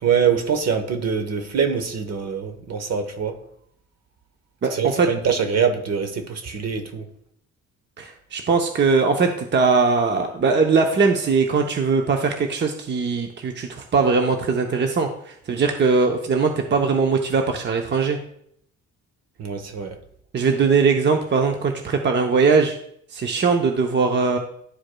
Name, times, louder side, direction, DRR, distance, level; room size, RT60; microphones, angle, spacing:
voice 1, 0.0-3.4 4.7-7.0 19.4-20.0, right 7 dB, 55° right, 1.1 m, -24 dB
voice 2, 4.6-5.1 8.0-18.2 20.3-22.8 23.1-24.4, right 4 dB, 35° right, 0.7 m, -20 dB
11.5 x 4.7 x 2.2 m
cardioid pair, 90°, 30 cm